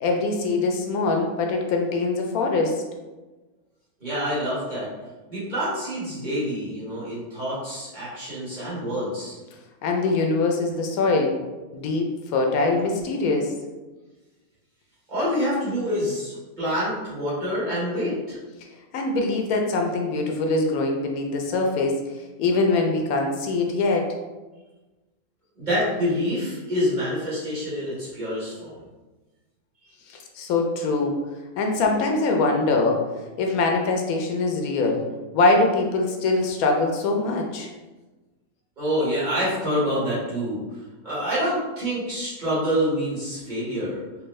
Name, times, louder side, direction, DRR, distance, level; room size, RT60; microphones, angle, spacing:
voice 1, 0.0-2.8 9.8-11.4 11.7-13.5 18.9-22.0 22.4-24.1 30.1-31.2 31.6-33.0 33.4-35.0 35.3-37.7, left 3 dB, 80° left, 2 dB, 1.0 m, -23 dB
voice 2, 4.0-4.9 5.3-9.4 15.1-18.4 25.6-28.8 38.8-40.6 41.0-44.0, equal, 35° right, -9 dB, 1.5 m, -27 dB
3.5 x 2.9 x 3.1 m, 1.2 s
omnidirectional pair, 1.5 m